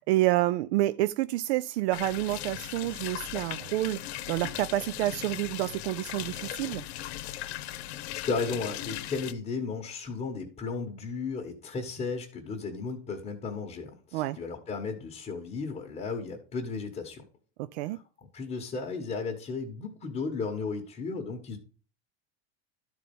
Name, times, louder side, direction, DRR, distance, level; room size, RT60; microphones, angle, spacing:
voice 1, 0.0-6.8 14.1-14.4 17.6-18.0, right 16 dB, 90° right, 0.5 m, -28 dB
sound 1, 1.9-9.3, left 14 dB, 85° left, 0.9 m, -38 dB
voice 2, 8.2-17.2 17.9-18.0 18.3-21.6, left 4 dB, 20° left, 1.4 m, -34 dB
12.0 x 4.4 x 5.3 m
supercardioid pair, 155°, 32 cm